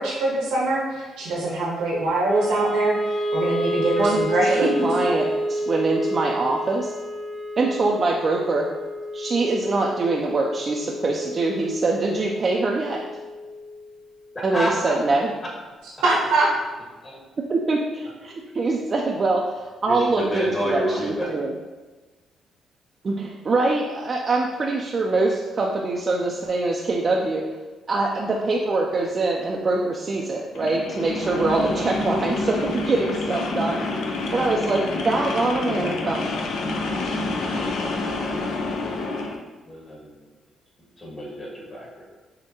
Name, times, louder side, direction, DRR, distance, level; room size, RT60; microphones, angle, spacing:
voice 1, 0.0-4.7 16.0-16.5, right 2 dB, 90° right, -4 dB, 1.1 m, -23 dB
Wind instrument woodwind instrument, 2.2-14.5, equal, 50° left, 0.8 m, -30 dB
voice 2, 4.5-6.9 7.6-8.7 9.1-13.0 14.4-15.3 17.5-21.5 23.0-27.4 27.9-33.9 34.3-36.2, right 3 dB, 45° right, -1 dB, 0.4 m, -24 dB
voice 3, 14.3-14.9 17.0-17.2 19.8-21.3 39.6-40.2 41.0-42.0, equal, 30° left, -4 dB, 1.4 m, -29 dB
sound 1, 30.5-39.4, left 2 dB, 80° left, 0.5 m, -28 dB
6.3 x 2.1 x 2.8 m, 1.2 s
supercardioid pair, 70°, 0 cm